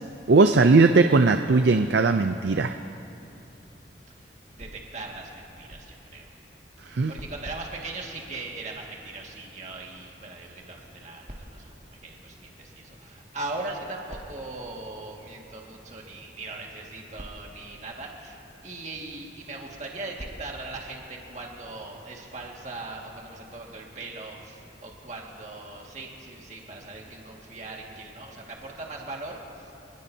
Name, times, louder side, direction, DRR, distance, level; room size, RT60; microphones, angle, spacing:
voice 1, 0.3-2.7 6.9-7.1, right 3 dB, 80° right, 7 dB, 0.5 m, -18 dB
voice 2, 4.2-6.3 6.8-11.7 12.0-29.7, right 2 dB, 40° right, -1 dB, 2.0 m, -39 dB
26.5 x 19.5 x 2.8 m, 2.8 s
head